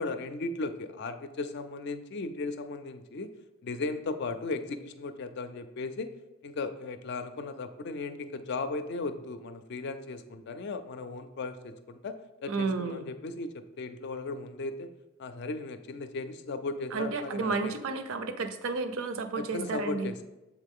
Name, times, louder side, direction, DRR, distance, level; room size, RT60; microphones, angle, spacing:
voice 1, 0.0-3.3 3.6-6.1 6.4-14.9 15.2-17.7 19.4-20.2, left 3 dB, 50° left, 10 dB, 0.4 m, -36 dB
voice 2, 12.5-13.1 16.9-20.1, right 4 dB, 75° right, 9 dB, 0.5 m, -32 dB
7.1 x 3.7 x 3.6 m, 1.0 s
head